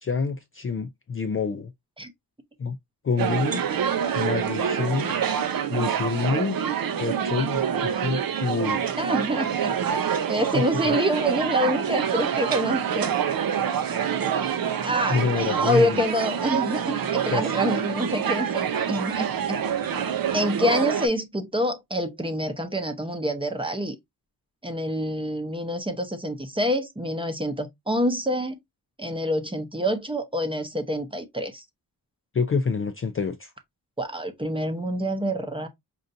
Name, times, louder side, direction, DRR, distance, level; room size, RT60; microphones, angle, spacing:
voice 1, 0.0-1.7 2.6-2.8 3.0-3.6 4.1-5.1 5.7-6.6 7.0-8.8 10.5-11.0 15.1-16.0 17.3-17.4 32.3-33.5, left 5 dB, 35° left, 0.4 m, -27 dB
sound 1, 3.2-21.1, right 8 dB, 65° right, 0.6 m, -26 dB
voice 2, 9.0-9.7 10.3-13.2 14.8-19.6 20.3-24.0 24.6-28.5 29.0-31.6 34.0-35.7, equal, 15° right, 0.7 m, -26 dB
5.4 x 2.5 x 2.6 m
wide cardioid pair, 120°, 38 cm